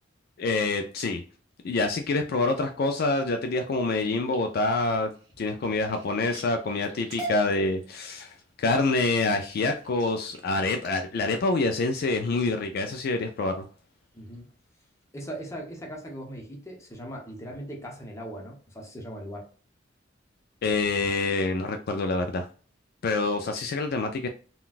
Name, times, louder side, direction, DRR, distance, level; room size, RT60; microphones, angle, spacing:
voice 1, 0.4-1.2 1.6-5.1 5.4-13.6 20.6-22.5 23.0-24.3, left 3 dB, 50° left, 5 dB, 0.3 m, -26 dB
sound 1, 4.3-12.6 13.2-13.6 14.0-14.4 14.8-14.9 15.2-15.3, right 2 dB, 20° right, 1.5 m, -45 dB
voice 2, 14.1-14.5 15.1-19.5, equal, 15° left, 0 dB, 0.8 m, -39 dB
3.8 x 2.3 x 2.4 m, 0.40 s
head